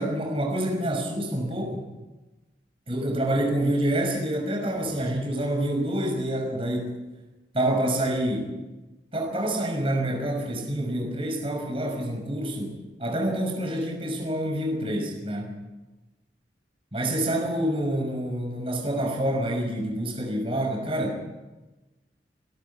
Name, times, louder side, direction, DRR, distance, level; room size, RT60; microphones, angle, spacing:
voice 1, 0.0-1.9 2.9-6.9 7.5-8.6 9.1-15.5 16.9-21.5, right 1 dB, 30° right, 1 dB, 5.8 m, -27 dB
27.5 x 13.0 x 8.6 m, 1.1 s
head